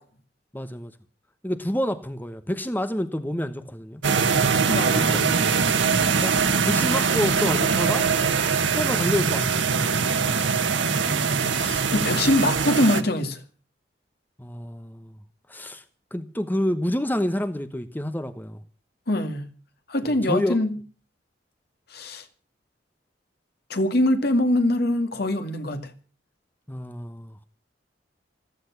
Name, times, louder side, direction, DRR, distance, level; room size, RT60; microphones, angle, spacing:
voice 1, 0.5-0.9 1.4-4.0 4.3-4.5 4.9-5.8 6.2-6.3 6.6-8.1 8.7-9.6 14.4-15.2 15.5-15.8 16.1-18.6 20.0-20.6 26.7-27.4, left 1 dB, 10° left, 1.0 m, -28 dB
sound 1, 4.0-13.0, right 5 dB, 85° right, 1.4 m, -22 dB
voice 2, 4.7-5.7 11.5-13.4 19.1-19.5 19.9-20.7 21.9-22.2 23.7-25.9, left 1 dB, 60° left, 2.2 m, -23 dB
15.0 x 14.5 x 6.0 m
head